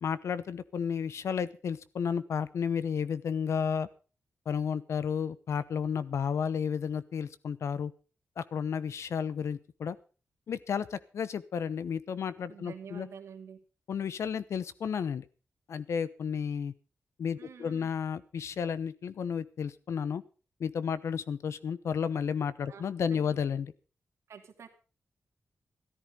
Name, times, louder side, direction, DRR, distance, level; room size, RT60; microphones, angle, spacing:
voice 1, 0.0-3.9 4.5-7.9 8.4-10.0 10.5-13.1 13.9-15.2 15.7-16.7 17.2-20.2 20.6-23.7, left 7 dB, 80° left, 16 dB, 0.9 m, -32 dB
voice 2, 12.5-13.6 17.4-17.9 22.7-23.4 24.3-24.7, right 7 dB, 85° right, 3 dB, 2.6 m, -48 dB
14.0 x 13.5 x 5.4 m, 0.37 s
wide cardioid pair, 165°, 5 cm